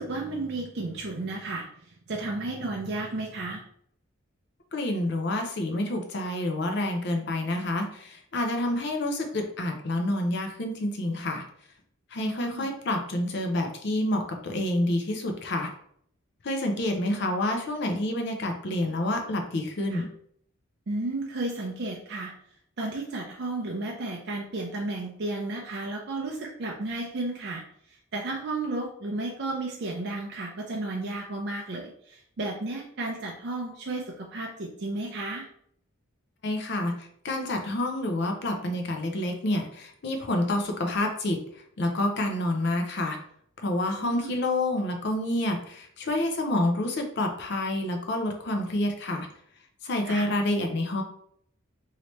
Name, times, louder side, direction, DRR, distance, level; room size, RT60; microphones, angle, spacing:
voice 1, 0.0-3.6 12.2-12.7 19.9-20.0 20.9-22.3 22.8-27.6 27.9-35.5 44.0-44.3 50.0-50.3, right 2 dB, 50° right, -1 dB, 0.5 m, -33 dB
voice 2, 4.7-11.4 12.1-15.7 16.4-20.1 36.4-41.4 41.8-43.2 43.6-49.3 49.8-51.0, left 1 dB, 55° left, 3 dB, 0.5 m, -28 dB
3.1 x 2.8 x 2.9 m, 0.66 s
head